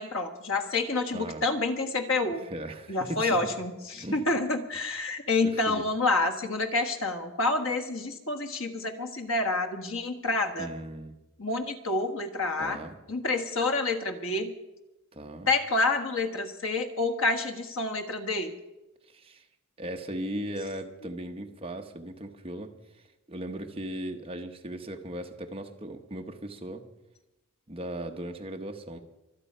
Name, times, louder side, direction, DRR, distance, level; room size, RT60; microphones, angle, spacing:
voice 1, 0.0-2.5 2.9-10.7 11.4-12.8 13.1-14.5 15.5-18.5, left 3 dB, 65° left, 5 dB, 1.7 m, -28 dB
voice 2, 2.5-3.4 3.9-4.2 5.4-5.8 10.6-11.1 12.6-13.0 15.1-15.5 19.1-19.4 19.8-22.7 23.3-26.8 27.7-29.0, right 1 dB, 25° right, 4 dB, 1.1 m, -37 dB
24.5 x 8.3 x 5.5 m, 0.97 s
head